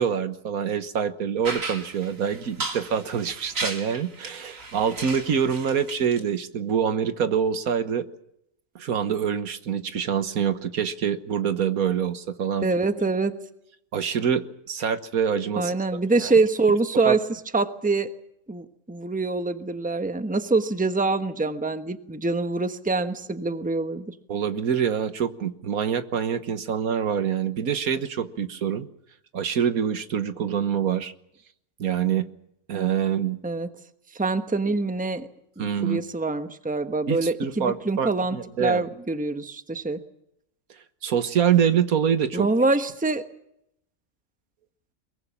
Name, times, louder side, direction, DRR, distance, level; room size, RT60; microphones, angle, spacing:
voice 1, 0.0-8.1 8.7-12.7 13.9-15.7 16.1-16.3 17.0-17.2 24.3-28.9 29.3-31.1 31.8-32.3 32.7-33.4 35.6-36.0 37.1-38.8 41.0-42.5, right 8 dB, 80° right, 11 dB, 1.7 m, -25 dB
sound 1, 1.4-6.2, right 3 dB, 65° right, 3.0 m, -35 dB
voice 2, 12.6-13.4 15.6-18.1 18.5-24.1 33.4-33.7 34.1-35.3 35.6-40.0 42.3-43.2, right 3 dB, 5° right, 9 dB, 1.1 m, -25 dB
23.0 x 22.0 x 7.2 m, 0.77 s
omnidirectional pair, 1.5 m